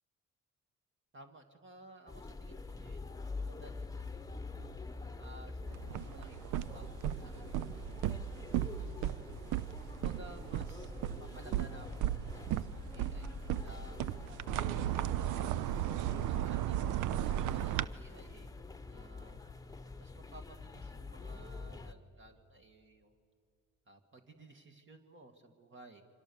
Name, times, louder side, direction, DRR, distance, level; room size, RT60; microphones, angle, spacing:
voice 1, 1.1-4.5 5.2-9.4 9.9-10.9 11.2-15.6 16.2-18.5 18.9-19.4 20.0-23.2 23.9-26.0, right 2 dB, 40° right, 4 dB, 2.1 m, -57 dB
sound 1, 2.1-21.9, left 3 dB, 10° left, 1.0 m, -46 dB
sound 2, 5.7-17.8, right 12 dB, 85° right, 0.6 m, -36 dB
29.0 x 25.5 x 7.1 m, 2.3 s
cardioid pair, 90°, 30 cm